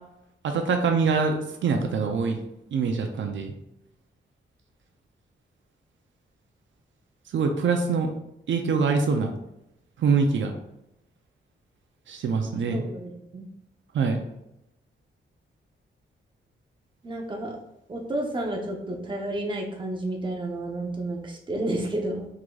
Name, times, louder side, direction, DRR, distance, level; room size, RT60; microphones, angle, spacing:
voice 1, 0.4-2.4 2.7-3.5 7.3-8.1 8.5-9.3 10.0-10.5 12.1-12.8 13.9-14.2, right 5 dB, 75° right, 4 dB, 0.5 m, -24 dB
voice 2, 12.5-13.5 17.0-17.6 17.9-22.3, right 1 dB, 25° right, 0 dB, 0.7 m, -31 dB
4.7 x 3.7 x 2.3 m, 0.85 s
wide cardioid pair, 145°, 20 cm